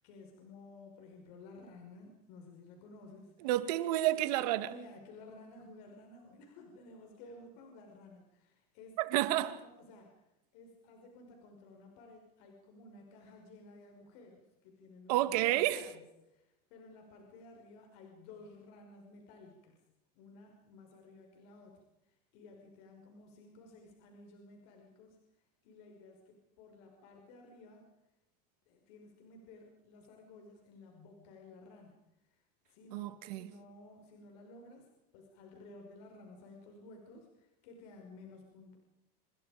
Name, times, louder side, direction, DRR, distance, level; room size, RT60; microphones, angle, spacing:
voice 1, 0.0-3.5 4.6-9.0 9.3-10.3 10.5-19.8 20.1-25.2 25.6-27.8 28.7-32.0 32.3-34.9 35.1-38.8, left 2 dB, 60° left, 5.5 m, -55 dB
voice 2, 3.4-4.7 9.0-9.6 15.1-15.9 32.9-33.5, right 14 dB, 70° right, 2.4 m, -30 dB
28.0 x 27.0 x 5.2 m
supercardioid pair, 165°, 21 cm